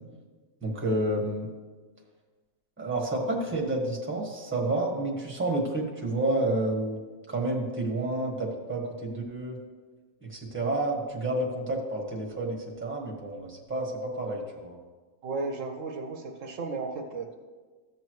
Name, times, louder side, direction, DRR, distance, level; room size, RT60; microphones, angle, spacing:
voice 1, 0.6-1.5 2.8-7.0 7.3-9.6 10.2-14.8, right 2 dB, 10° right, -2 dB, 1.4 m, -30 dB
voice 2, 15.2-17.3, right 3 dB, 70° right, 4 dB, 1.1 m, -34 dB
15.0 x 6.8 x 3.1 m, 1.4 s
omnidirectional pair, 1.4 m